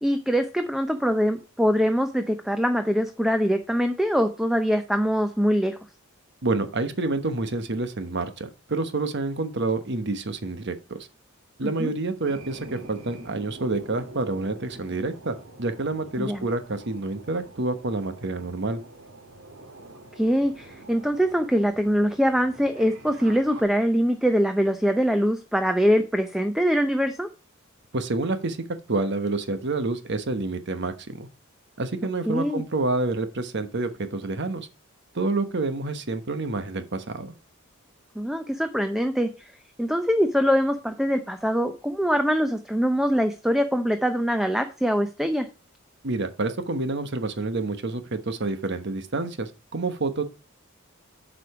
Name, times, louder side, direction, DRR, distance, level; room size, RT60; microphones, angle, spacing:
voice 1, 0.0-5.8 11.8-11.9 16.2-16.5 20.2-27.3 32.3-32.6 38.2-39.5 39.8-45.5, equal, ahead, 7 dB, 0.6 m, -23 dB
voice 2, 6.4-11.0 11.6-18.8 27.9-28.6 28.9-31.3 31.8-34.7 35.1-37.3 46.0-50.2, right 2 dB, 60° right, 9 dB, 1.1 m, -28 dB
sound 1, 12.3-23.6, right 2 dB, 80° right, 1.9 m, -46 dB
8.2 x 5.1 x 4.8 m, 0.33 s
head